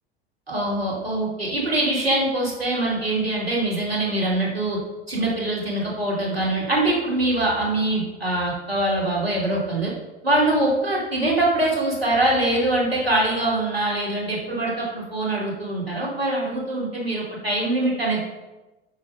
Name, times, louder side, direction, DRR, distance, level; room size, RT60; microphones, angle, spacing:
voice 1, 0.5-4.8 5.1-9.9 10.2-18.2, right 1 dB, 85° right, -3 dB, 3.1 m, -23 dB
8.6 x 7.1 x 5.7 m, 1.1 s
figure-of-eight pair, 75°, 30 cm